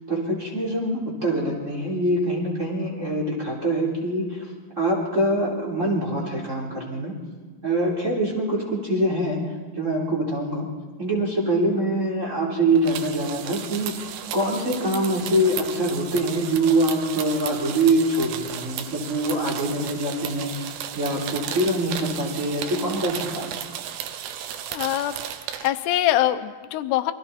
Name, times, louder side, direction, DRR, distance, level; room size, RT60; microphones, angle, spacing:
voice 1, 0.1-7.1 7.6-9.4 9.7-10.7 11.0-23.6, right 1 dB, 20° right, -3 dB, 3.7 m, -24 dB
sound 1, 12.8-25.7, right 10 dB, 85° right, 3.0 m, -34 dB
voice 2, 24.7-25.2 25.6-27.1, left 13 dB, 90° left, 10 dB, 2.9 m, -23 dB
27.5 x 22.0 x 4.3 m, 1.3 s
omnidirectional pair, 4.6 m